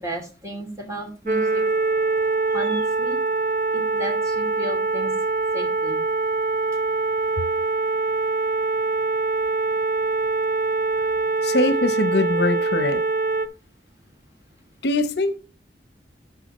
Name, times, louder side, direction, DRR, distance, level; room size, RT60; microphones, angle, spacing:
voice 1, 0.0-1.6 2.5-3.2 3.7-5.1 5.5-6.0 11.0-11.1, right 1 dB, 20° right, 2.9 m, -34 dB
sound 1, 1.3-13.5, right 3 dB, 45° right, 0.7 m, -23 dB
voice 2, 11.4-13.0 14.8-15.4, left 2 dB, 65° left, 0.9 m, -22 dB
12.0 x 5.7 x 3.1 m
head